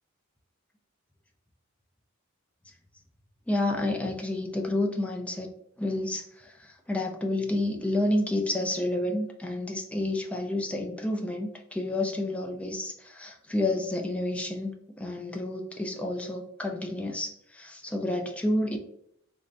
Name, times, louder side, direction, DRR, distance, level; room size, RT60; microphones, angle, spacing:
voice 1, 3.5-5.5 5.8-18.8, left 1 dB, 5° left, 1 dB, 0.3 m, -30 dB
3.5 x 2.1 x 2.5 m, 0.72 s
head